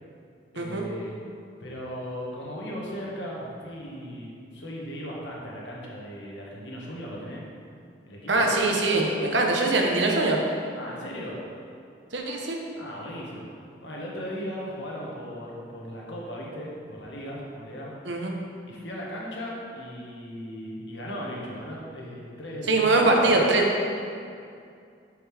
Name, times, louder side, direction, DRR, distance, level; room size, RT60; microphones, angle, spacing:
voice 1, 0.5-1.1 1.6-7.4 8.1-8.5 10.7-11.4 12.8-17.9 18.7-23.3, equal, 75° left, -4 dB, 1.7 m, -37 dB
voice 2, 8.3-10.4 12.1-12.6 18.0-18.3 22.7-23.7, right 2 dB, 75° right, 1 dB, 1.1 m, -22 dB
8.2 x 6.9 x 3.5 m, 2.4 s
head